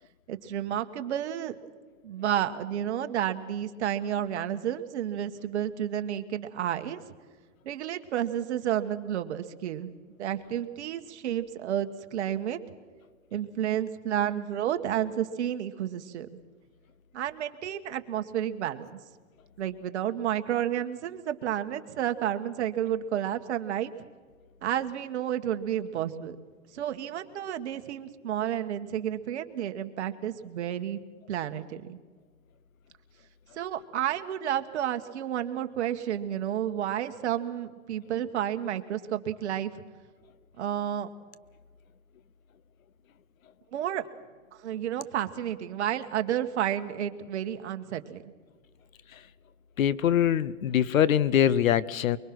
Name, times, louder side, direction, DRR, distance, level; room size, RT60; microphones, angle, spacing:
voice 1, 0.3-1.6 2.0-7.0 7.6-9.9 10.2-12.6 13.3-16.3 17.1-19.0 19.6-23.9 24.6-26.4 26.7-31.0 31.3-32.0 33.5-39.7 40.6-41.1 43.7-44.1 44.6-48.3, right 10 dB, 55° right, 8 dB, 1.6 m, -31 dB
voice 2, 49.8-52.2, left 10 dB, 85° left, 20 dB, 1.0 m, -23 dB
24.0 x 23.5 x 6.1 m, 1.5 s
hypercardioid pair, 155°, 40 cm